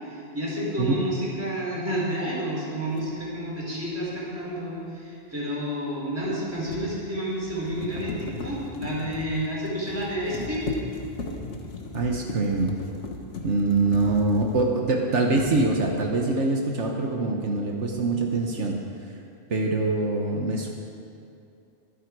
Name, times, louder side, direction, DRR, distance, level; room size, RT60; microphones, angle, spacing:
voice 1, 0.1-10.7, right 1 dB, 10° right, -7 dB, 4.6 m, -30 dB
sound 1, 3.0-3.1 6.2-15.0 15.3-16.1, left 3 dB, 85° left, 1.6 m, -37 dB
voice 2, 11.9-12.8 13.4-18.8 19.5-20.7, right 3 dB, 80° right, 1 dB, 1.5 m, -24 dB
23.5 x 9.1 x 4.8 m, 2.6 s
omnidirectional pair, 1.2 m